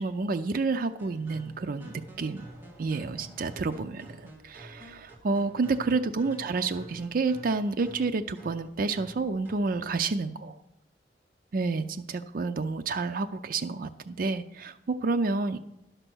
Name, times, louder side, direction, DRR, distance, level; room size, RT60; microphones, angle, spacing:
voice 1, 0.0-2.4 2.8-10.6 11.5-15.6, right 3 dB, 50° right, 7 dB, 0.4 m, -29 dB
sound 1, 1.0-9.7, equal, 10° right, 1.8 m, -49 dB
11.0 x 6.6 x 6.1 m, 0.87 s
head